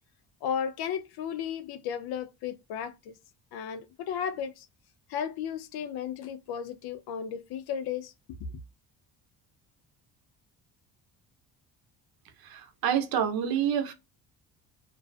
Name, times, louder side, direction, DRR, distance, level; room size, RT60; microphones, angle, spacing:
voice 1, 0.4-3.1 3.5-4.7 5.1-8.1, left 8 dB, 70° left, 0.6 m, -34 dB
voice 2, 12.4-13.9, right 9 dB, 65° right, 0.6 m, -28 dB
2.4 x 2.2 x 2.3 m
cardioid pair, 85°, 39 cm